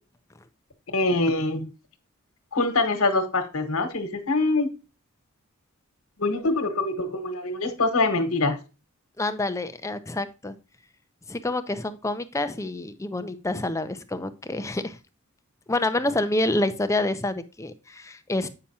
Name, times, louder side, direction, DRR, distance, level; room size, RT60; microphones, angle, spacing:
voice 1, 0.9-1.7 2.5-4.7 6.2-8.6, left 2 dB, 70° left, 7 dB, 1.3 m, -24 dB
voice 2, 9.2-10.5 11.3-15.0 15.7-18.5, left 2 dB, 15° left, 10 dB, 0.6 m, -27 dB
8.6 x 5.8 x 2.8 m, 0.31 s
head